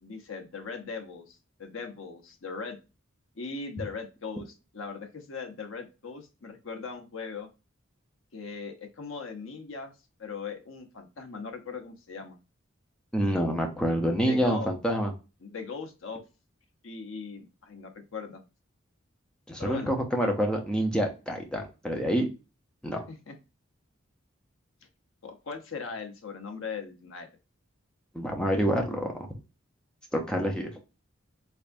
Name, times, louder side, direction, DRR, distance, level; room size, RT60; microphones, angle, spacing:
voice 1, 0.0-2.8 3.4-7.5 8.3-9.9 10.2-12.4 14.2-14.7 15.4-16.2 16.8-18.4 19.6-19.9 23.1-23.3 25.2-27.3, left 5 dB, 70° left, 5 dB, 0.8 m, -39 dB
voice 2, 13.1-15.1 19.5-22.3 22.8-23.0 28.1-29.3 30.1-30.7, equal, 5° left, 1 dB, 0.6 m, -27 dB
3.4 x 3.4 x 2.5 m, 0.30 s
head